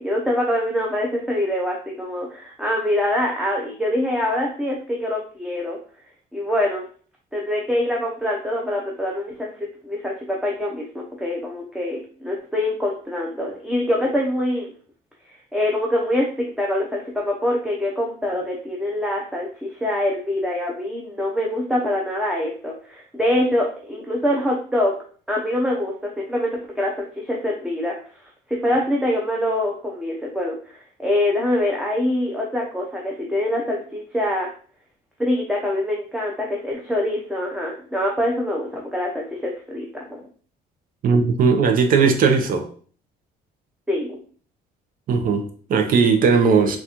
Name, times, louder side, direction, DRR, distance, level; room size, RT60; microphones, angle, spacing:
voice 1, 0.0-5.8 6.3-6.8 7.3-9.5 9.8-14.7 15.3-24.9 25.3-27.9 28.5-34.5 35.2-40.2 43.9-44.2, left 1 dB, 5° right, 0.6 m, -24 dB
voice 2, 41.0-42.7 45.1-46.8, right 5 dB, 55° right, 0.6 m, -18 dB
3.9 x 2.4 x 2.9 m
cardioid pair, 110°, 17 cm